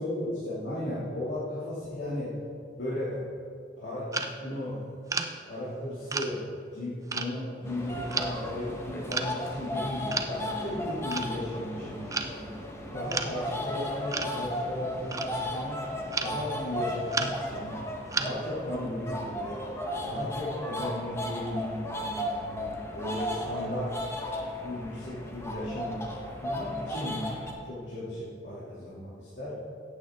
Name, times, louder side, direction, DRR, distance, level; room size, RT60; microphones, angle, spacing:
voice 1, 0.0-2.3 2.7-3.2 3.8-4.8 5.2-6.4 6.7-12.4 12.9-15.8 16.2-17.7 18.2-19.6 20.0-23.9 24.6-26.0 26.4-29.5, left 1 dB, 70° left, -10 dB, 2.8 m, -35 dB
sound 1, 4.1-4.3 5.1-5.3 6.1-6.4 7.1-7.3 8.1-8.3 9.1-9.3 10.1-10.3 11.1-11.3 12.1-12.3 13.1-13.3 14.1-14.4 15.1-15.5 16.1-16.4 17.1-17.6 18.1-18.5, right 4 dB, 20° right, 0.5 m, -32 dB
sound 2, 7.6-27.5, left 1 dB, 15° left, 1.2 m, -35 dB
15.5 x 8.5 x 3.8 m, 2.3 s
head